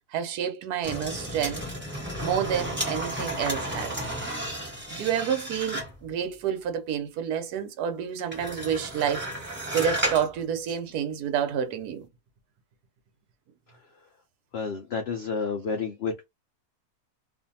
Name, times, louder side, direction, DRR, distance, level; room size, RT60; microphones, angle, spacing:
voice 1, 0.1-1.6 2.2-4.0 4.9-12.1, right 8 dB, 80° right, 1.1 m, -29 dB
sound 1, 0.8-6.1 8.3-10.3 10.7-10.8, right 1 dB, 10° right, 1.1 m, -32 dB
voice 2, 14.5-16.3, left 5 dB, 85° left, 0.5 m, -30 dB
2.6 x 2.5 x 2.6 m
omnidirectional pair, 1.7 m